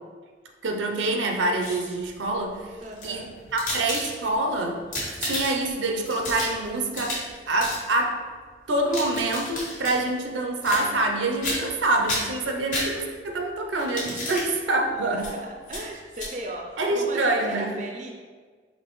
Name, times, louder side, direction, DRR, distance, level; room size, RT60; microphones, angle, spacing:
voice 1, 0.6-2.8 3.0-3.3 3.5-4.8 5.2-7.2 7.5-8.2 8.7-15.3 16.8-17.7, right 2 dB, 90° right, 3 dB, 0.5 m, -26 dB
sound 1, 1.4-2.1 2.8-4.4 4.8-5.7 6.1-7.3 7.6-7.8 8.7-10.0 10.6-11.1 11.4-11.8 12.1-13.3 13.8-14.5 15.2-15.3 15.7-15.8 16.1-16.3, left 1 dB, 45° left, 1.2 m, -32 dB
voice 2, 2.8-3.3 14.0-14.2 14.7-18.1, right 1 dB, 40° right, 1 dB, 0.4 m, -37 dB
5.1 x 2.8 x 3.0 m, 1.5 s
head